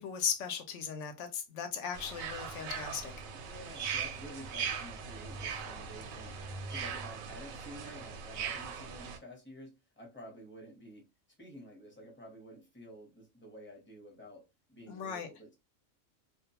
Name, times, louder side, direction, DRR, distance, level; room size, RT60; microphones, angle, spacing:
voice 1, 0.0-3.3 14.9-15.3, left 7 dB, 70° left, 0.8 m, -37 dB
sound 1, 1.9-9.2, right 6 dB, 90° right, 1.0 m, -40 dB
voice 2, 3.3-6.4 6.7-11.1 11.4-14.4 14.7-15.5, equal, 10° left, 0.7 m, -50 dB
2.3 x 2.2 x 2.7 m
omnidirectional pair, 1.4 m